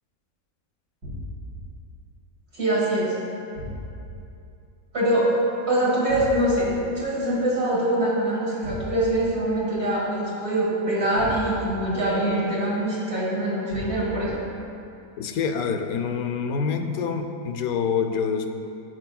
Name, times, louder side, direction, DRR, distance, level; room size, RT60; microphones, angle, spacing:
sound 1, 1.0-1.6 3.6-4.1 6.1-6.7 8.6-9.2 11.2-11.7 13.7-14.3, left 1 dB, 65° right, 2.3 m, -35 dB
voice 1, 2.5-3.1 4.9-5.3 5.7-14.4, right 1 dB, 50° right, -6 dB, 1.9 m, -24 dB
voice 2, 15.2-18.5, left 6 dB, 90° left, 6 dB, 1.1 m, -26 dB
13.5 x 4.7 x 2.3 m, 2.6 s
omnidirectional pair, 1.5 m